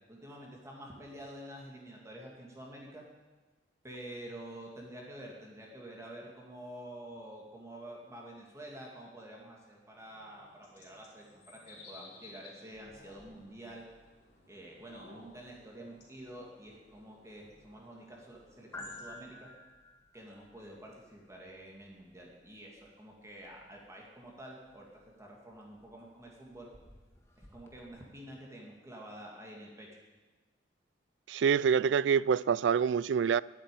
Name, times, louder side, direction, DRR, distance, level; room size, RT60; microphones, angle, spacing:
voice 1, 0.1-3.0 3.8-13.9 14.5-19.5 20.1-26.7 27.4-29.9, right 1 dB, 15° right, 2.2 m, -48 dB
sound 1, 9.9-19.5, left 3 dB, 65° left, 4.1 m, -57 dB
sound 2, 12.7-27.9, left 2 dB, 15° left, 1.5 m, -56 dB
voice 2, 31.3-33.4, right 7 dB, 85° right, 0.3 m, -26 dB
10.5 x 8.3 x 9.9 m
head